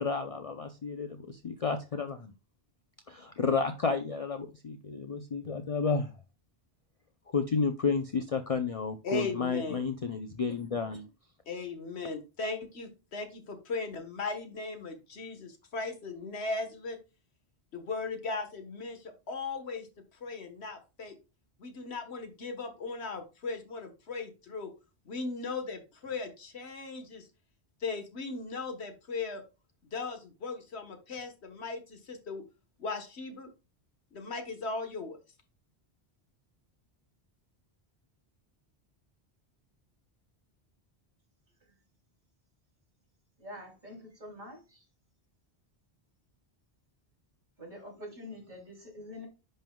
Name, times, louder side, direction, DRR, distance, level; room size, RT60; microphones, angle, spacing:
voice 1, 0.0-2.3 3.1-6.1 7.3-11.1, left 5 dB, 40° left, 7 dB, 0.6 m, -31 dB
voice 2, 9.0-9.8 11.5-17.0 17.7-19.9 20.2-21.2 21.6-24.7 25.0-27.3 27.8-29.4 29.9-32.4 32.8-33.5 34.1-35.2, left 3 dB, 85° left, 7 dB, 1.6 m, -37 dB
voice 3, 43.4-44.6 47.6-49.3, left 1 dB, 45° right, -2 dB, 3.4 m, -45 dB
10.5 x 5.5 x 2.3 m, 0.30 s
omnidirectional pair, 1.1 m